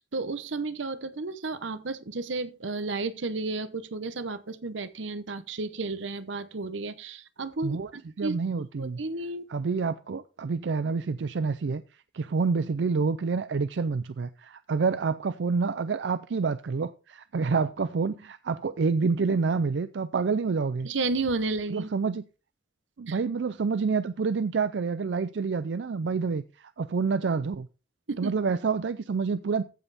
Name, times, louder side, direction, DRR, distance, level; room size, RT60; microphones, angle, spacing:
voice 1, 0.0-8.4 8.8-9.5 20.8-21.9 23.1-23.2 28.1-28.3, right 3 dB, 85° right, 0.9 m, -32 dB
voice 2, 8.2-9.0 9.5-11.8 12.1-20.9 21.7-22.2 23.0-27.7 28.2-29.6, right 4 dB, 70° right, 0.4 m, -28 dB
15.0 x 5.5 x 4.1 m
head